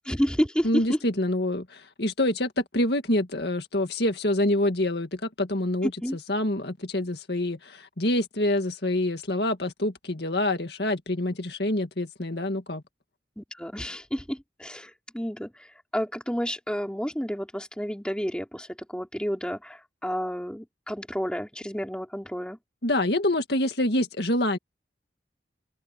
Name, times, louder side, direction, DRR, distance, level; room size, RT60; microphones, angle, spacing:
voice 1, 0.1-1.0 5.8-6.2 13.4-15.7 15.9-22.6, equal, 5° left, 3.5 m, -30 dB
voice 2, 0.6-5.9 6.3-12.8 22.8-24.6, left 1 dB, 60° left, 2.1 m, -26 dB
head